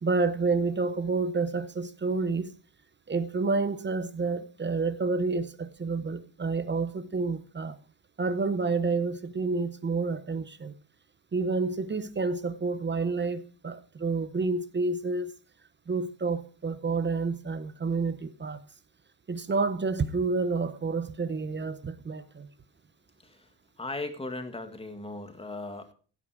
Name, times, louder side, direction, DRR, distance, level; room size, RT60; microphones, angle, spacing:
voice 1, 0.0-2.5 3.1-7.8 8.2-10.7 11.3-15.3 15.9-18.6 19.3-22.5, right 4 dB, 25° right, 0.8 m, -29 dB
voice 2, 23.8-25.9, left 2 dB, 15° left, 1.8 m, -37 dB
16.0 x 9.0 x 4.9 m
cardioid pair, 155°, 43 cm